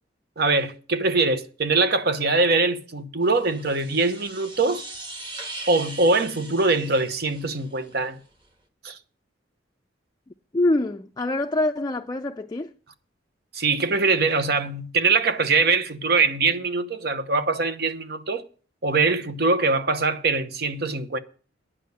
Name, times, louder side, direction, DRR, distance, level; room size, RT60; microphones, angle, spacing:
voice 1, 0.4-4.8 5.7-8.2 8.8-9.0 13.5-18.4 18.8-21.2, right 3 dB, 60° right, 0.9 m, -23 dB
sound 1, 3.2-7.9, right 2 dB, 25° right, 1.5 m, -40 dB
voice 2, 10.5-12.7, left 2 dB, 20° left, 0.4 m, -25 dB
10.0 x 5.5 x 8.2 m
head